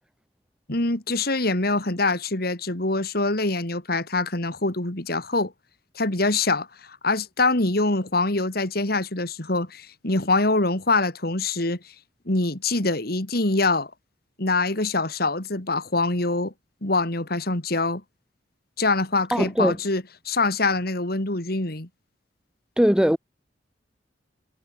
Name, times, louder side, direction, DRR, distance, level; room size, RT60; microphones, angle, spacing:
voice 1, 0.7-5.5 5.9-11.8 12.3-13.9 14.4-16.5 16.8-18.0 18.8-21.9, left 2 dB, 55° left, 2.9 m, -24 dB
voice 2, 19.3-19.8 22.8-23.2, equal, 5° right, 0.7 m, -20 dB
head